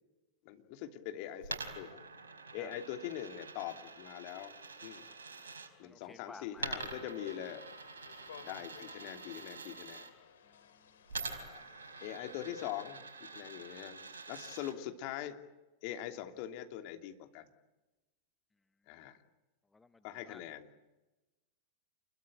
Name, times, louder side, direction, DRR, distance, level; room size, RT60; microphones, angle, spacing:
voice 1, 0.4-2.0 2.5-4.6 4.8-5.1 5.8-7.6 8.4-10.1 11.1-11.7 12.0-13.0 13.3-15.4 15.8-17.5 18.9-19.2 20.0-20.7, left 11 dB, 45° left, 5 dB, 2.9 m, -43 dB
Coin (dropping), 1.4-5.7 6.6-10.1 11.1-14.7, right 4 dB, 70° right, 4.5 m, -46 dB
voice 2, 5.8-6.7 10.4-11.0 19.7-20.4, left 3 dB, 10° left, 12 dB, 0.9 m, -55 dB
sound 1, 7.2-12.5, left 8 dB, 65° left, 2.9 m, -58 dB
28.5 x 22.0 x 9.1 m, 1.1 s
figure-of-eight pair, 90°, 0 cm